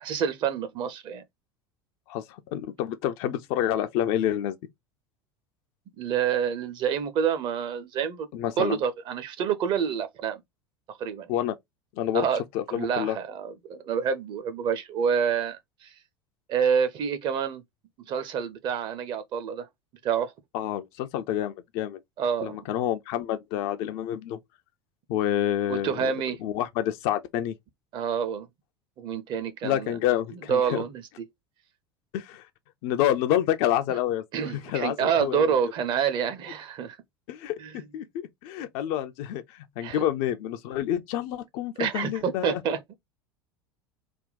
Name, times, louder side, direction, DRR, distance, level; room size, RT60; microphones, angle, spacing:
voice 1, 0.0-1.2 6.0-8.3 8.6-10.4 10.9-11.3 12.1-12.4 12.7-15.9 16.5-17.6 18.1-19.7 20.0-20.3 22.2-22.7 25.7-26.4 27.9-28.5 29.0-29.9 30.5-31.0 33.9-34.0 34.3-37.0 37.6-37.7 39.8-40.0 41.8-42.9, right 7 dB, 35° right, 0.7 m, -28 dB
voice 2, 2.1-4.6 8.3-8.8 11.3-11.6 12.0-12.3 12.5-13.2 20.5-22.0 22.4-24.4 25.1-26.1 26.4-27.5 29.6-30.8 32.1-32.5 32.8-35.5 37.3-42.6, left 11 dB, 45° left, 0.5 m, -28 dB
3.5 x 2.2 x 3.9 m
figure-of-eight pair, 75°, 13 cm